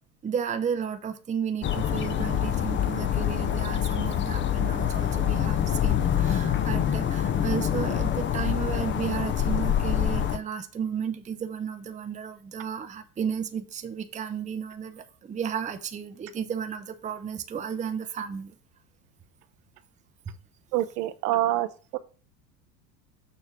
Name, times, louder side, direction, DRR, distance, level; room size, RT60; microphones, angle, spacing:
voice 1, 0.2-18.5, right 7 dB, 15° right, 0.6 m, -33 dB
sound 1, 1.6-10.4, left 10 dB, 25° left, 0.5 m, -26 dB
voice 2, 20.7-21.7 21.9-22.0, right 14 dB, 70° right, 0.7 m, -25 dB
6.9 x 3.2 x 5.7 m
hypercardioid pair, 85°, 50 cm